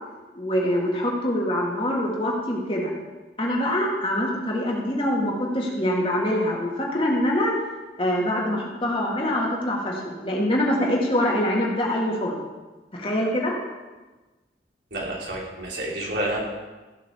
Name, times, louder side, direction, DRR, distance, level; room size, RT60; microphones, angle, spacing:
voice 1, 0.3-2.9 3.4-7.5 8.0-12.4 12.9-13.6, left 1 dB, 30° left, -2 dB, 2.2 m, -24 dB
voice 2, 14.9-16.4, right 1 dB, 70° right, -3 dB, 3.4 m, -29 dB
15.0 x 5.9 x 7.1 m, 1.2 s
head